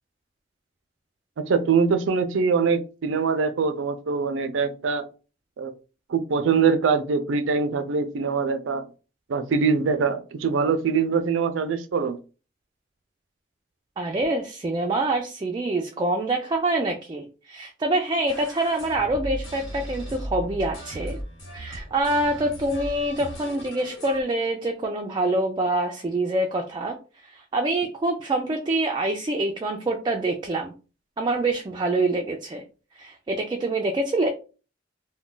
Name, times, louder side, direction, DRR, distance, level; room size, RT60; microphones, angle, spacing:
voice 1, 1.4-5.1 5.6-5.7 6.1-8.9 9.3-12.2, right 5 dB, 90° right, 0.4 m, -23 dB
voice 2, 14.0-21.2 21.5-27.0 27.3-30.7 31.2-32.6 33.0-34.3, right 2 dB, 25° right, 0.3 m, -25 dB
sound 1, 18.3-24.2, right 1 dB, 80° left, 1.3 m, -37 dB
2.3 x 2.2 x 3.8 m
head